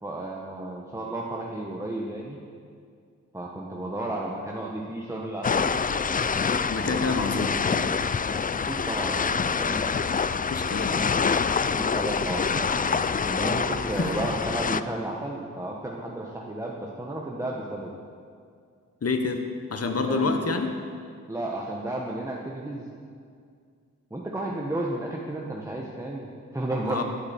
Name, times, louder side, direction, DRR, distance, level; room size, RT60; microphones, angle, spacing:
voice 1, 0.0-2.4 3.3-5.7 6.8-7.0 7.3-7.7 8.5-9.9 11.8-17.9 20.1-20.4 21.3-22.9 24.1-27.0, right 1 dB, 10° right, -2 dB, 1.1 m, -33 dB
sound 1, 5.4-14.8, left 5 dB, 30° left, 0.4 m, -26 dB
voice 2, 6.7-7.6 10.0-10.1 10.5-11.0 14.0-14.1 19.0-19.4 19.7-20.8 26.8-27.0, left 4 dB, 50° left, 5 dB, 1.2 m, -27 dB
13.0 x 8.7 x 4.4 m, 2.2 s
cardioid pair, 55°, 31 cm